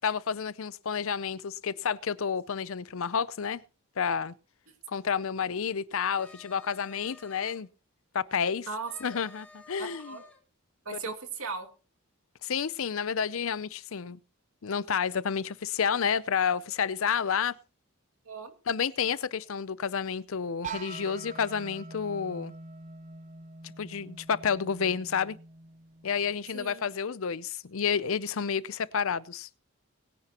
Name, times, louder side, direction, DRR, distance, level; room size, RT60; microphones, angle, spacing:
voice 1, 0.0-3.6 4.0-4.3 4.9-7.7 8.1-8.7 9.0-10.2 12.4-14.2 14.6-17.5 18.7-22.5 23.6-25.4 26.0-29.5, left 6 dB, 70° left, 0.5 m, -30 dB
sound 1, 6.2-7.6 8.9-10.4, left 2 dB, 5° left, 1.8 m, -53 dB
voice 2, 8.7-9.2 9.8-10.2 10.8-11.7 18.3-18.5 26.5-26.8, right 4 dB, 75° right, 2.4 m, -37 dB
sound 2, 20.6-26.4, right 4 dB, 35° right, 0.6 m, -44 dB
20.5 x 9.9 x 2.9 m
head